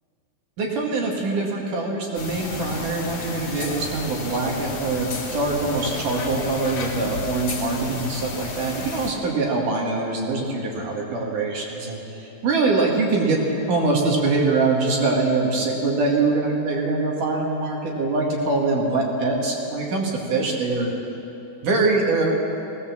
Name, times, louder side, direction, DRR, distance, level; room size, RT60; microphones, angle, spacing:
voice 1, 0.6-13.4 13.7-20.9 21.6-22.3, right 3 dB, 50° right, -1 dB, 3.2 m, -23 dB
sound 1, 2.1-9.1, left 3 dB, 40° left, 3.3 m, -32 dB
20.5 x 18.0 x 7.3 m, 3.0 s
omnidirectional pair, 5.4 m